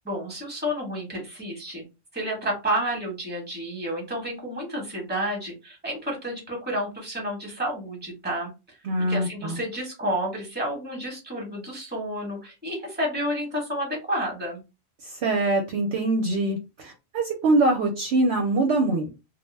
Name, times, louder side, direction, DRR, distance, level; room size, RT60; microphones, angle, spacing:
voice 1, 0.0-1.8 2.1-8.8 9.1-14.6, equal, 10° right, 0 dB, 0.9 m, -30 dB
voice 2, 8.8-9.5 15.0-19.1, right 2 dB, 65° right, 2 dB, 0.8 m, -23 dB
2.3 x 2.1 x 3.1 m, 0.26 s
omnidirectional pair, 1.3 m